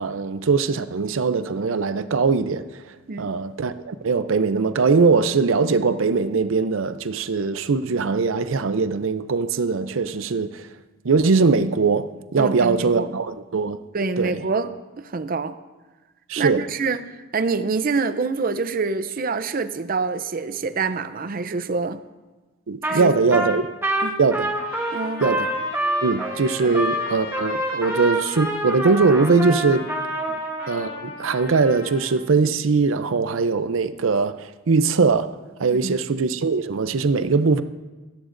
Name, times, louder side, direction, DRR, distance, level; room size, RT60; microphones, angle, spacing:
voice 1, 0.0-2.6 3.2-10.7 11.0-12.1 12.3-13.8 14.2-14.4 16.3-16.6 22.7-23.6 24.2-24.5 25.2-25.5 26.0-29.9 30.7-35.3 35.6-37.6, right 4 dB, 90° right, 0.6 m, -21 dB
voice 2, 12.4-13.2 13.9-14.7 15.0-15.6 16.4-22.0 22.8-23.1 24.0-24.2 24.9-25.3 26.6-26.8 30.3-30.4 35.7-36.0, right 4 dB, 45° right, 0.6 m, -26 dB
Trumpet, 22.8-23.0 23.3-30.7, right 1 dB, 10° right, 1.1 m, -26 dB
Trumpet 2, 24.5-32.2, left 3 dB, 85° left, 3.2 m, -38 dB
16.0 x 13.5 x 2.6 m
head